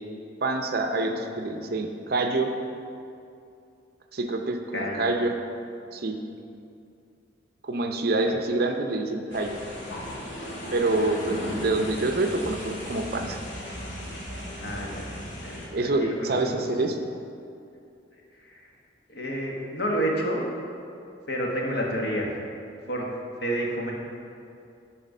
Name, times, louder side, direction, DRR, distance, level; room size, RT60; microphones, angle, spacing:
voice 1, 0.4-2.5 4.1-5.3 5.9-6.2 7.6-9.6 10.7-13.4 15.7-17.0, right 2 dB, 55° right, 5 dB, 0.6 m, -26 dB
voice 2, 4.7-5.1 8.3-8.4 10.8-11.2 14.6-16.6 18.1-18.7 19.1-20.4 21.3-22.3 22.9-23.1 23.4-23.9, right 1 dB, 60° left, -2 dB, 1.4 m, -30 dB
sound 1, 9.3-15.7, equal, 80° left, 1.9 m, -36 dB
10.0 x 4.3 x 5.4 m, 2.6 s
head